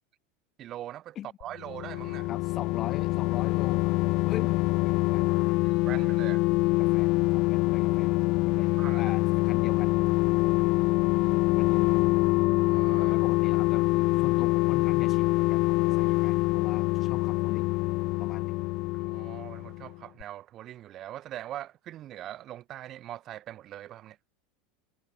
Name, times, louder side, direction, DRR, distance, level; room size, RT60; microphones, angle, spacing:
voice 1, 0.6-2.3 5.6-6.5 8.6-9.0 12.6-13.1 18.9-24.2, right 13 dB, 35° right, 2.7 m, -42 dB
sound 1, 1.4-19.9 20.2-20.3, left 23 dB, 50° left, 2.4 m, -25 dB
voice 2, 2.3-3.9 4.2-5.2 5.9-6.2 6.8-8.1 8.5-10.0 11.6-12.0 12.9-17.8 18.2-18.6, left 11 dB, 30° left, 7.3 m, -41 dB
supercardioid pair, 145°, 0 cm